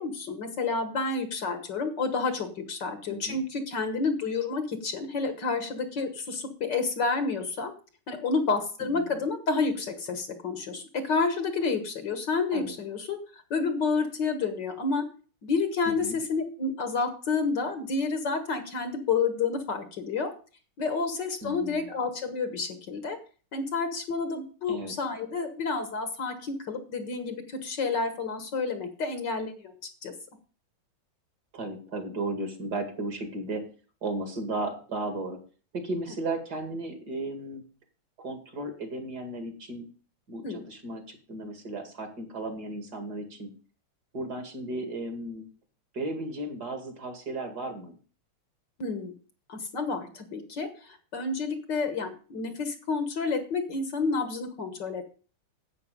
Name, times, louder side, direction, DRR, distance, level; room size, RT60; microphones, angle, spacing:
voice 1, 0.0-7.7 8.1-15.0 15.4-20.3 20.8-23.2 23.5-29.7 30.0-30.1 40.4-40.6 48.8-49.1 49.5-55.1, left 4 dB, 55° left, 8 dB, 1.9 m, -30 dB
voice 2, 3.1-3.4 8.8-9.2 12.5-12.8 15.9-16.2 21.4-21.9 24.7-24.9 31.5-33.7 34.0-35.4 35.7-37.6 38.2-39.9 40.3-43.5 44.1-45.5 45.9-48.0, right 2 dB, 45° right, 6 dB, 2.7 m, -35 dB
11.0 x 8.3 x 5.3 m, 0.39 s
omnidirectional pair, 2.4 m